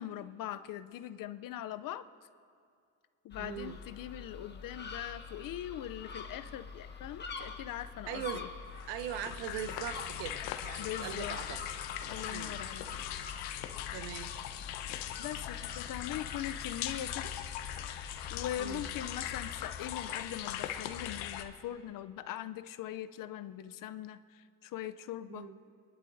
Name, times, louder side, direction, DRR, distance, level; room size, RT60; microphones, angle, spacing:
voice 1, 0.0-2.1 3.2-8.5 10.8-11.4 12.1-12.8 15.2-17.4 18.3-25.5, left 12 dB, 45° left, 12 dB, 0.6 m, -41 dB
sound 1, 3.3-19.8, left 5 dB, 20° left, 1.2 m, -46 dB
voice 2, 3.4-3.8 8.1-8.5 8.9-11.6 12.3-12.6 13.9-14.3 18.6-18.9 25.3-25.6, right 10 dB, 65° right, 12 dB, 0.9 m, -41 dB
sound 2, 8.8-21.4, left 11 dB, 70° left, 1.0 m, -40 dB
26.5 x 11.0 x 2.7 m, 2.3 s
supercardioid pair, 105°, 47 cm